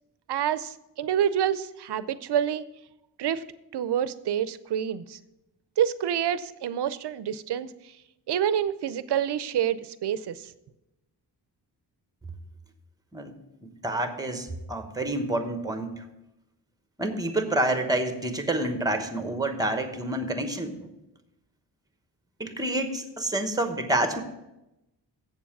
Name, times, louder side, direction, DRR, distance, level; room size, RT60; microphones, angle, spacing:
voice 1, 0.3-2.6 3.2-3.4 3.7-5.2 5.8-7.7 8.3-10.5, right 9 dB, 75° right, 15 dB, 0.6 m, -27 dB
voice 2, 13.6-16.0 17.0-20.8 22.4-24.2, right 1 dB, 10° right, 7 dB, 1.0 m, -28 dB
7.9 x 7.1 x 7.2 m, 0.93 s
wide cardioid pair, 140°, 41 cm